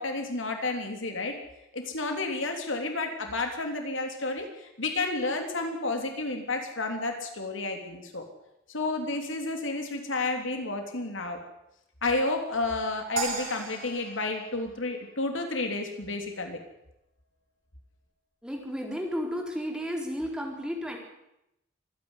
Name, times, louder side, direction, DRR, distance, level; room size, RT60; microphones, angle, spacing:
voice 1, 0.0-1.4 1.7-8.2 8.7-11.4 12.0-16.6, left 2 dB, 75° left, 4 dB, 3.3 m, -31 dB
sound 1, 13.2-15.5, right 4 dB, 75° right, 5.5 m, -36 dB
voice 2, 18.4-21.0, equal, 5° right, 1 dB, 4.1 m, -33 dB
25.0 x 10.5 x 9.8 m, 0.84 s
head